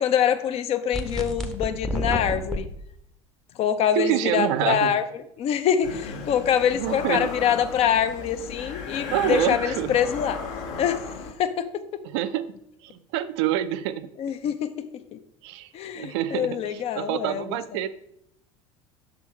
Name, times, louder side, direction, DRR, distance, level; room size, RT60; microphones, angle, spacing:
voice 1, 0.0-2.7 3.6-5.0 5.4-10.4 10.8-11.7 14.2-14.7 15.1-15.2 15.7-17.6, left 9 dB, 35° left, 11 dB, 0.5 m, -25 dB
sound 1, 0.9-2.6, equal, ahead, 0.7 m, -29 dB
voice 2, 3.9-5.0 6.7-7.3 9.1-10.0 10.7-10.8 12.0-12.5 12.8-14.1 15.4-15.7 15.9-17.9, right 12 dB, 55° right, 13 dB, 0.4 m, -27 dB
sound 2, 5.8-11.3, left 5 dB, 55° left, 0.9 m, -35 dB
6.0 x 3.8 x 4.4 m, 0.74 s
figure-of-eight pair, 70°, 17 cm